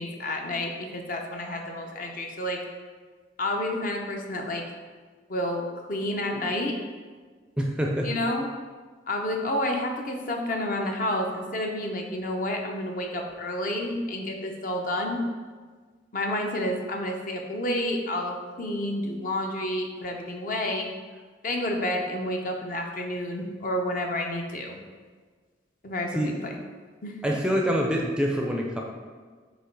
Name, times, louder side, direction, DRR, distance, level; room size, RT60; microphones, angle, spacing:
voice 1, 0.0-2.6 3.4-4.6 5.3-5.6 5.9-6.7 8.0-8.5 9.1-15.2 16.1-20.9 21.4-24.8 25.8-26.5 27.0-27.4, left 1 dB, 45° left, 2 dB, 0.7 m, -30 dB
voice 2, 7.6-8.1 26.1-26.3 27.2-28.8, equal, 5° right, 0 dB, 0.5 m, -25 dB
8.3 x 2.9 x 4.6 m, 1.5 s
head